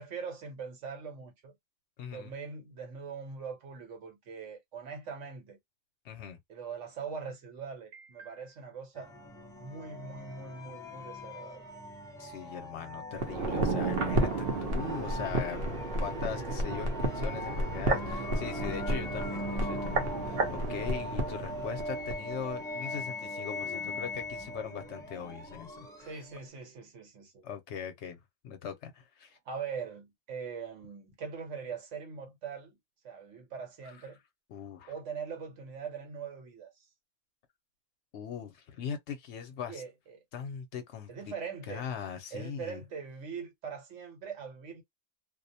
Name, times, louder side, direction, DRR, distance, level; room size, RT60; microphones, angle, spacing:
voice 1, 0.0-1.5 2.1-5.6 6.5-9.1 9.6-11.7 26.0-27.4 29.5-32.8 33.0-34.2 34.9-36.7 39.7-40.2 41.1-41.9 42.3-44.8, right 6 dB, 70° right, 1.2 m, -42 dB
voice 2, 2.0-2.3 6.0-6.4 12.2-26.2 27.4-29.4 34.0-34.1 34.5-34.9 38.1-39.8 40.3-41.3 41.7-42.8, left 7 dB, 70° left, 0.9 m, -41 dB
sound 1, 9.0-26.5, left 1 dB, 5° left, 0.4 m, -40 dB
sound 2, 13.1-22.2 22.5-22.6, right 2 dB, 55° right, 0.8 m, -32 dB
2.5 x 2.0 x 2.6 m
omnidirectional pair, 1.3 m